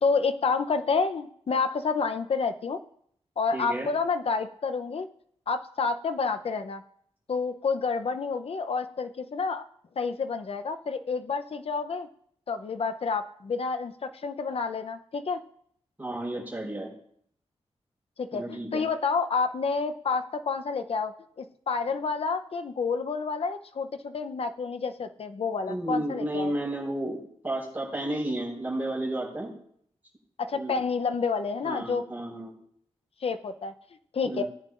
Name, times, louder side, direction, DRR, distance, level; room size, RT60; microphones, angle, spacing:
voice 1, 0.0-2.8 3.4-5.1 5.5-6.8 7.3-9.6 10.0-12.1 12.5-15.4 18.2-26.5 30.4-32.0 33.2-33.7 34.1-34.4, left 4 dB, 60° left, 9 dB, 0.7 m, -29 dB
voice 2, 3.5-3.9 16.0-16.9 18.3-18.9 25.7-29.5 30.5-30.8 31.6-32.6 34.2-34.4, right 1 dB, 15° right, -3 dB, 5.3 m, -32 dB
18.0 x 9.3 x 2.5 m, 0.65 s
wide cardioid pair, 105°, 11 cm